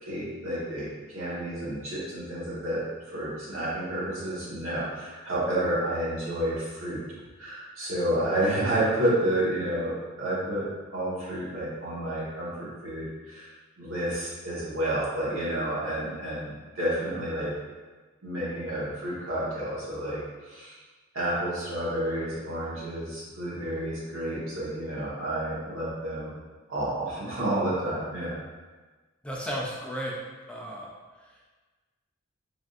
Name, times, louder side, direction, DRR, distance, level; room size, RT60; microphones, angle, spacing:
voice 1, 0.0-2.8 3.1-7.0 7.4-10.7 10.9-13.5 13.8-17.5 18.2-20.8 21.1-26.3 26.7-28.4, right 1 dB, 80° right, -8 dB, 1.1 m, -30 dB
voice 2, 29.2-30.1 30.5-30.9 31.2-31.5, equal, 5° left, -3 dB, 0.3 m, -34 dB
3.4 x 2.5 x 2.3 m, 1.3 s
head